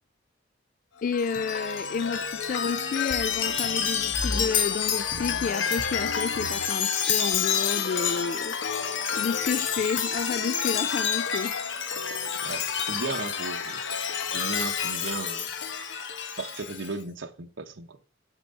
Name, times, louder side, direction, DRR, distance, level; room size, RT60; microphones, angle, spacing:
voice 1, 1.0-8.6 8.9-11.5, left 5 dB, 45° left, 0.3 m, -31 dB
Chime, 1.1-16.9, left 7 dB, 70° left, 1.1 m, -29 dB
voice 2, 12.4-15.5 16.4-18.0, right 3 dB, 85° right, 1.1 m, -36 dB
6.5 x 6.0 x 7.1 m
head